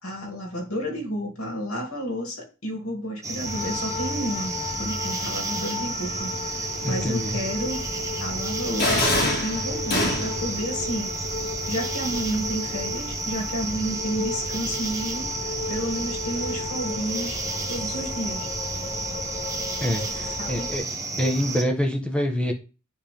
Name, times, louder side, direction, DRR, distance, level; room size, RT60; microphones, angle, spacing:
voice 1, 0.0-7.8 8.2-11.1 11.7-17.4 17.7-18.5 20.4-20.7, equal, 85° left, 1 dB, 2.6 m, -31 dB
sound 1, 3.2-21.6, right 3 dB, 15° right, 1.0 m, -32 dB
sound 2, 3.4-20.8, left 4 dB, 30° left, 0.6 m, -35 dB
voice 2, 6.8-7.4 19.8-20.8 21.2-22.5, equal, 5° left, 3 dB, 1.0 m, -26 dB
sound 3, 8.8-10.5, left 1 dB, 45° left, 1.9 m, -24 dB
10.0 x 3.6 x 3.5 m, 0.32 s
head